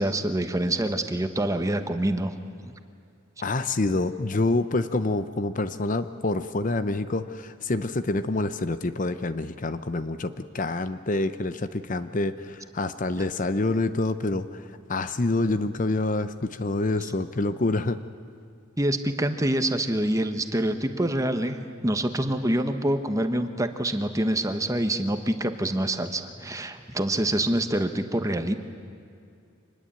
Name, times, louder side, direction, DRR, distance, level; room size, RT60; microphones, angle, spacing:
voice 1, 0.0-2.3 18.8-28.5, right 1 dB, 15° right, 7 dB, 1.2 m, -26 dB
voice 2, 3.4-18.0, left 2 dB, 40° left, 11 dB, 0.7 m, -27 dB
25.5 x 20.5 x 8.8 m, 2.4 s
head